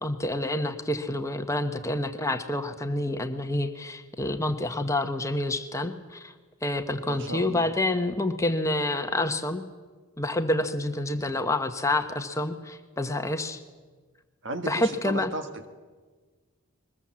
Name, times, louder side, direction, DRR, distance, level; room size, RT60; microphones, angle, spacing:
voice 1, 0.0-6.3 6.6-9.6 10.2-13.6 14.7-15.3, left 1 dB, 15° left, 7 dB, 1.1 m, -28 dB
voice 2, 7.1-7.7 14.4-15.7, right 1 dB, 55° right, 8 dB, 1.7 m, -35 dB
22.0 x 20.0 x 7.5 m, 1.4 s
head